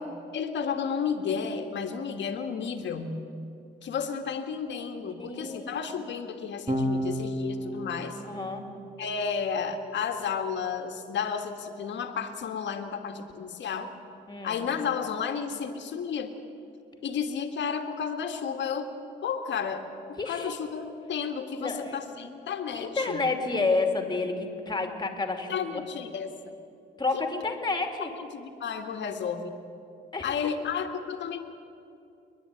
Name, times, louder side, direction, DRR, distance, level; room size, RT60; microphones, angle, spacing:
voice 1, 0.3-3.2 3.8-8.2 9.0-13.9 14.4-16.3 17.0-18.9 19.2-23.2 25.5-26.3 28.2-29.6 30.2-31.4, left 6 dB, 65° left, 6 dB, 1.7 m, -32 dB
voice 2, 5.1-6.1 8.2-8.7 14.3-14.6 20.2-20.5 21.6-22.0 22.7-25.8 27.0-28.1 30.1-30.3, left 3 dB, 20° left, 4 dB, 2.8 m, -30 dB
Electric guitar / Bass guitar, 6.7-13.1, equal, 25° right, 2.7 m, -36 dB
28.5 x 10.5 x 9.8 m, 2.7 s
cardioid pair, 90°, 20 cm